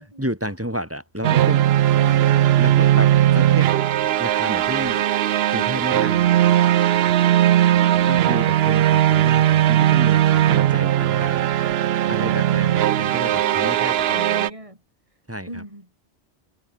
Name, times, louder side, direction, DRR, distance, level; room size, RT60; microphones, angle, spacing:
voice 1, 0.2-1.6 2.6-3.7 4.2-5.0 5.5-6.4 8.1-11.7 12.1-14.2 15.3-15.6, equal, 10° right, 4.4 m, -31 dB
sound 1, 1.2-14.5, right 12 dB, 70° right, 0.8 m, -18 dB
voice 2, 7.8-8.2 13.4-14.8 15.5-15.9, right 1 dB, 30° right, 7.0 m, -38 dB
omnidirectional pair, 1.1 m